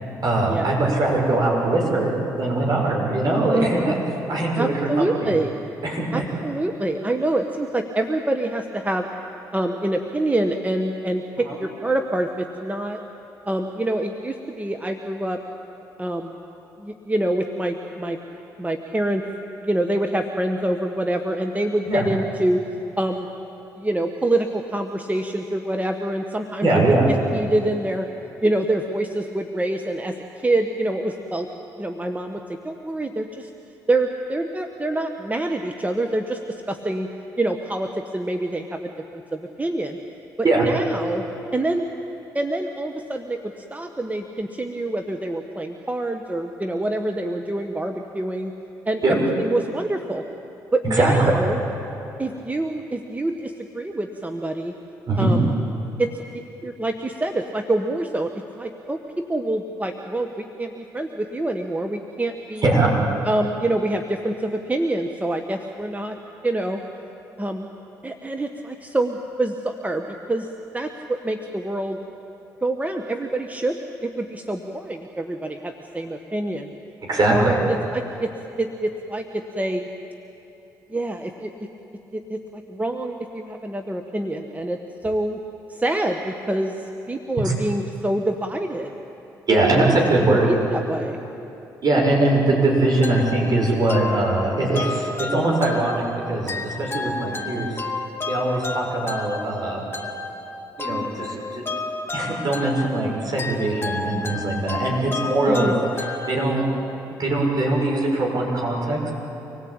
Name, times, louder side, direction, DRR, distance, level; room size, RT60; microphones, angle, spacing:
voice 1, 0.2-4.0 4.3-5.3 5.8-6.2 11.5-11.6 21.9-22.1 26.6-27.1 40.4-40.6 49.0-49.2 50.9-51.4 55.1-55.4 62.6-62.9 77.1-77.6 87.4-87.5 89.5-90.5 91.8-97.8 98.3-99.8 100.8-101.6 102.1-105.7 106.3-106.6 107.2-109.1, right 2 dB, 50° right, -1 dB, 6.7 m, -21 dB
voice 2, 3.5-3.9 4.6-5.5 6.1-9.1 9.5-13.0 13.5-15.4 16.0-16.4 16.8-18.2 18.6-19.2 19.6-22.6 23.0-23.3 23.8-26.7 27.3-28.1 28.4-31.5 31.8-33.5 33.9-37.1 37.4-40.0 40.7-41.2 41.5-41.9 42.3-48.5 48.9-50.2 50.7-51.6 52.2-54.7 55.2-55.5 56.0-62.6 63.2-66.2 66.4-66.8 67.4-67.7 68.0-70.5 70.7-72.0 72.6-76.7 77.3-78.3 78.6-79.9 80.9-81.5 82.1-85.4 85.7-88.9 89.5-91.2 105.4-105.8, right 1 dB, 15° right, 5 dB, 1.4 m, -26 dB
sound 1, 93.0-106.8, left 3 dB, 25° left, 2.3 m, -32 dB
25.5 x 18.0 x 8.8 m, 3.0 s
hypercardioid pair, 55°, 9 cm